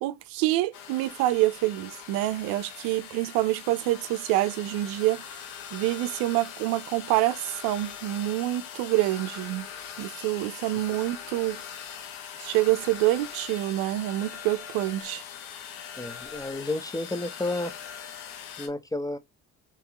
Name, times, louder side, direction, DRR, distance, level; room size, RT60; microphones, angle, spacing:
voice 1, 0.0-5.3 5.7-9.7 10.0-11.6 12.4-15.2, right 16 dB, 80° right, 0.5 m, -26 dB
sound 1, 0.7-18.7, left 8 dB, 80° left, 0.9 m, -41 dB
voice 2, 16.0-17.7 18.6-19.2, left 2 dB, 10° left, 0.7 m, -31 dB
3.6 x 3.0 x 2.8 m
supercardioid pair, 65°, 33 cm